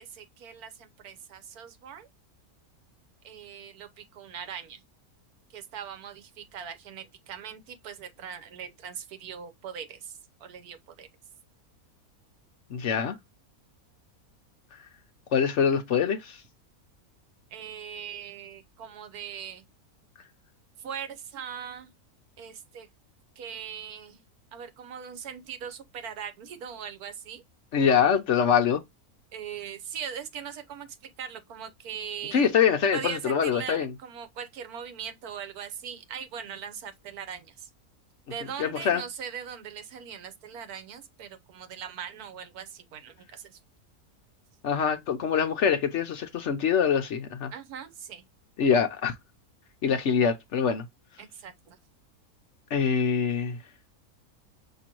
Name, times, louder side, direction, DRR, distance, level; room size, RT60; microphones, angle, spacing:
voice 1, 0.0-2.1 3.2-4.8 5.5-11.1 17.5-19.6 20.8-21.9 22.4-22.9 23.4-24.2 24.5-27.4 29.3-32.5 32.9-37.7 38.3-43.5 47.5-48.2 51.2-51.8, right 8 dB, 80° right, 1.3 m, -40 dB
voice 2, 12.7-13.2 15.3-16.4 27.7-28.8 32.3-33.9 38.6-39.0 44.6-47.5 48.6-49.1 49.8-50.9 52.7-53.6, left 7 dB, 60° left, 0.9 m, -24 dB
6.1 x 3.0 x 2.9 m
omnidirectional pair, 1.6 m